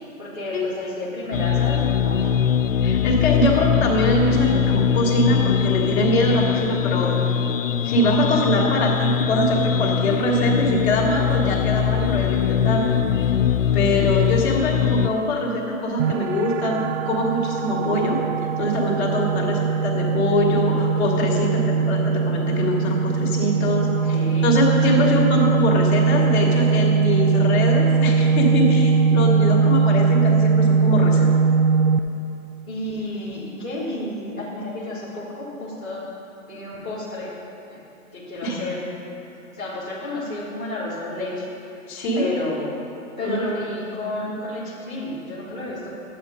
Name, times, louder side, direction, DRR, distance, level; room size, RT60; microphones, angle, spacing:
voice 1, 0.2-2.4 13.9-14.2 24.1-24.4 32.7-36.0 36.5-37.3 37.7-37.8 38.1-38.8 39.5-41.5 42.1-42.8 43.2-45.9, left 1 dB, 5° left, -14 dB, 0.3 m, -31 dB
sound 1, 1.3-15.1, left 8 dB, 65° left, 0.6 m, -22 dB
voice 2, 2.8-7.2 7.8-13.3 13.7-18.2 18.6-24.1 24.4-31.3 38.4-38.6 41.9-42.3 43.2-43.5, left 1 dB, 45° left, -2 dB, 2.5 m, -23 dB
sound 2, 16.0-32.0, right 5 dB, 50° right, 0.5 m, -20 dB
11.5 x 8.6 x 5.2 m, 2.8 s
hypercardioid pair, 135°, 43 cm